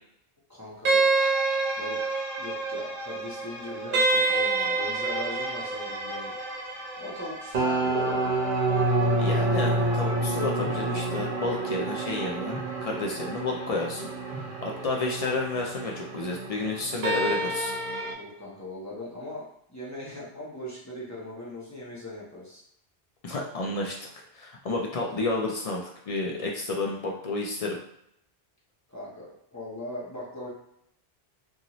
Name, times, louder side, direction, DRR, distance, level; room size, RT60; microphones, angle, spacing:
voice 1, 0.5-1.1 1.8-6.3 7.0-8.3 18.1-22.6 28.9-30.5, left 1 dB, 20° left, -7 dB, 0.7 m, -39 dB
sound 1, 0.8-18.1, right 2 dB, 55° right, 0.8 m, -28 dB
voice 2, 9.2-17.7 23.2-24.1 24.3-27.8, left 2 dB, 55° left, -1 dB, 0.4 m, -31 dB
sound 2, 10.6-11.3 12.2-13.2 13.8-13.9 14.3-15.3, right 1 dB, 15° right, 1.0 m, -43 dB
2.6 x 2.4 x 2.9 m, 0.74 s
omnidirectional pair, 1.1 m